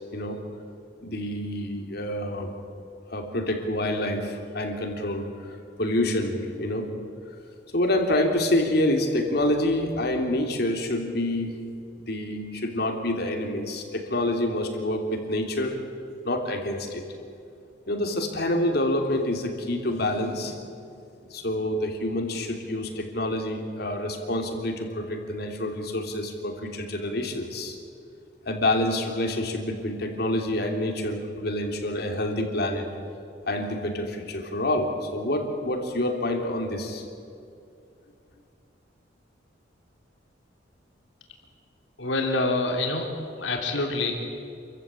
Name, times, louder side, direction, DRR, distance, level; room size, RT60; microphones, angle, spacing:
voice 1, 1.0-2.5 3.1-5.5 5.8-6.9 7.7-11.5 12.0-15.8 16.2-17.0 17.9-20.9 21.3-27.8 28.4-32.8 33.5-37.0, left 1 dB, 55° left, 4 dB, 3.0 m, -27 dB
voice 2, 42.0-44.1, left 2 dB, 75° left, 2 dB, 3.1 m, -26 dB
28.0 x 15.0 x 8.8 m, 2.5 s
head